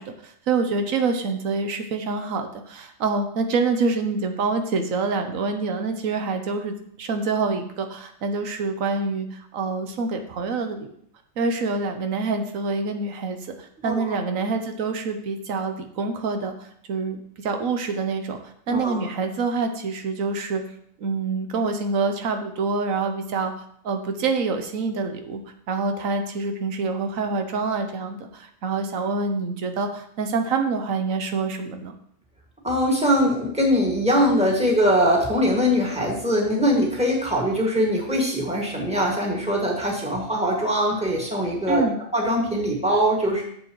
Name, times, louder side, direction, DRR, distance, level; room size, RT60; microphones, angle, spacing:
voice 1, 0.0-10.9 11.4-20.6 21.0-25.4 25.7-31.9 41.7-41.9, right 4 dB, 85° right, 6 dB, 1.3 m, -26 dB
voice 2, 13.8-14.1 18.7-19.0 32.6-41.8 42.1-43.4, equal, 5° right, -2 dB, 2.0 m, -22 dB
12.0 x 7.2 x 3.1 m, 0.65 s
omnidirectional pair, 1.4 m